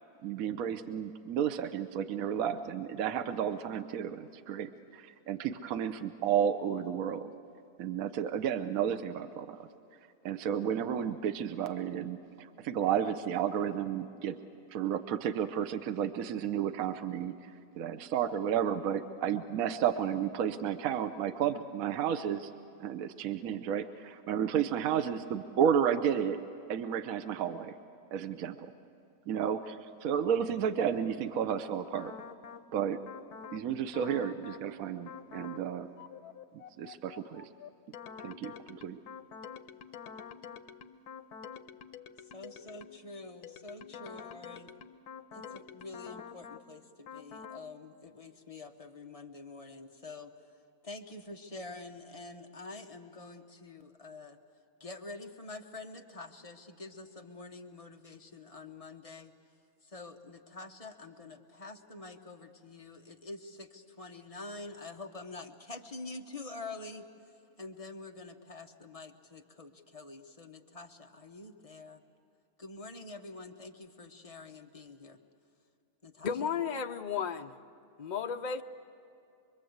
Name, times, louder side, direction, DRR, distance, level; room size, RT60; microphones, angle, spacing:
voice 1, 0.2-7.3 7.8-9.6 10.2-14.4 14.7-22.5 22.8-26.4 26.7-27.7 28.1-28.7 29.3-32.1 32.7-33.0 33.5-35.9 36.8-37.5 38.2-39.0, right 8 dB, 70° right, 9 dB, 1.2 m, -32 dB
Puzzle (Loop), 31.9-32.7 33.1-33.6 33.9-34.7 35.1-35.6 36.0-43.0 43.4-46.7 47.1-47.6, left 7 dB, 85° left, 1.3 m, -47 dB
voice 2, 42.3-44.7 45.3-50.3 50.8-54.4 54.8-59.3 59.8-67.0 67.6-72.0 72.6-75.2 76.0-76.3, left 3 dB, 25° left, 4 dB, 1.0 m, -46 dB
voice 3, 76.2-77.5 78.0-78.6, left 7 dB, 45° left, 7 dB, 0.5 m, -33 dB
25.0 x 23.0 x 8.0 m, 2.5 s
omnidirectional pair, 1.6 m